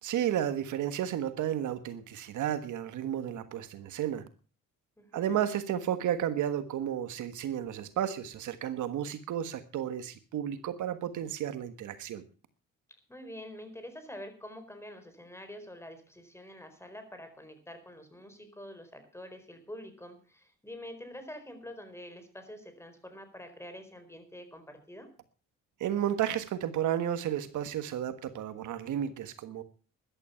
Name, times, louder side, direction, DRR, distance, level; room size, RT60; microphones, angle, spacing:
voice 1, 0.0-4.2 5.1-12.2 25.8-29.6, right 10 dB, 75° right, 11 dB, 1.5 m, -32 dB
voice 2, 5.0-5.4 13.1-25.1, left 1 dB, 10° left, 8 dB, 4.3 m, -46 dB
14.0 x 11.5 x 5.7 m, 0.38 s
cardioid pair, 90°, 30 cm